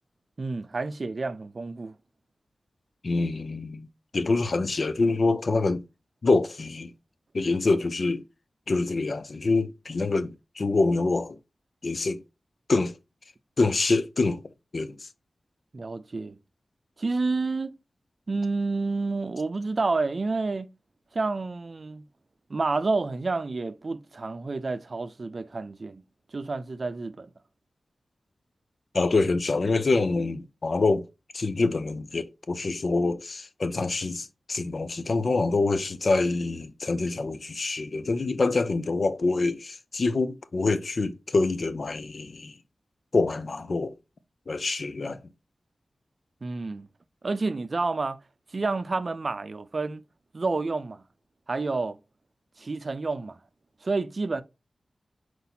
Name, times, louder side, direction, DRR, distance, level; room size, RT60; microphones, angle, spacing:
voice 1, 0.4-1.9 15.7-16.4 17.0-17.7 18.3-20.7 21.1-22.0 22.5-26.0 26.3-27.3 46.4-46.9 47.2-48.2 48.5-50.0 50.3-51.0 51.5-52.0 52.6-53.4 53.8-54.4, right 3 dB, 55° right, 0.5 m, -29 dB
voice 2, 3.0-3.9 4.1-5.8 6.2-6.9 7.3-8.2 8.7-11.4 11.8-12.2 12.7-12.9 13.6-14.4 14.7-15.1 28.9-31.0 31.3-42.5 43.1-43.9 44.5-45.2, left 3 dB, 60° left, 0.5 m, -26 dB
4.6 x 4.1 x 2.7 m
cardioid pair, 60°, 0 cm